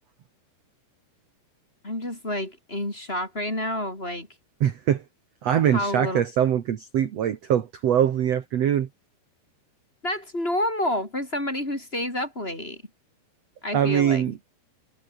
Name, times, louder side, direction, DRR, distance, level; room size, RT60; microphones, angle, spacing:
voice 1, 1.8-4.3 5.7-6.2 10.0-12.8 13.6-14.2, left 1 dB, 15° left, 4.4 m, -29 dB
voice 2, 4.6-5.0 5.4-8.9 13.7-14.4, right 10 dB, 65° right, 1.6 m, -23 dB
omnidirectional pair, 5.0 m